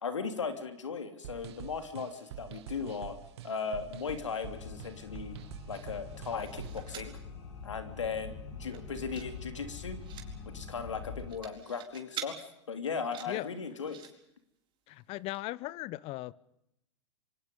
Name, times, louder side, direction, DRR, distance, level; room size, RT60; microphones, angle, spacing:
voice 1, 0.0-3.2 3.4-5.3 5.7-7.2 7.6-10.0 10.5-12.4 12.7-14.0, left 5 dB, 85° left, 3.1 m, -37 dB
sound 1, 1.2-6.9, right 11 dB, 65° right, 1.9 m, -46 dB
sound 2, 4.4-11.3, left 5 dB, 65° left, 7.5 m, -45 dB
sound 3, 6.1-7.2 7.6-7.7 8.0-8.3 8.6-9.3 9.6-10.3 11.0-12.3 12.9-14.1 15.0-15.1 15.3-15.4, right 10 dB, 35° right, 4.5 m, -46 dB
voice 2, 14.9-16.3, left 18 dB, 40° left, 0.9 m, -38 dB
26.5 x 24.5 x 5.4 m
hypercardioid pair, 110°, 15 cm